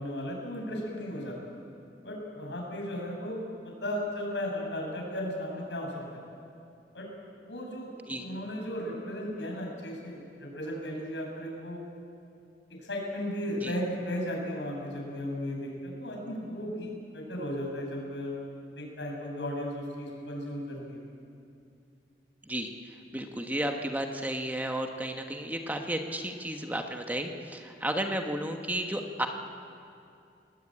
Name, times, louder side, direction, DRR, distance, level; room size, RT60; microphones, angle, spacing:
voice 1, 0.0-1.4 2.0-6.2 6.9-7.1 7.4-11.8 12.7-18.4 18.7-21.0, equal, 80° left, 0 dB, 7.4 m, -35 dB
voice 2, 22.4-29.3, right 1 dB, 10° right, 4 dB, 1.4 m, -33 dB
29.0 x 19.5 x 8.9 m, 2.5 s
head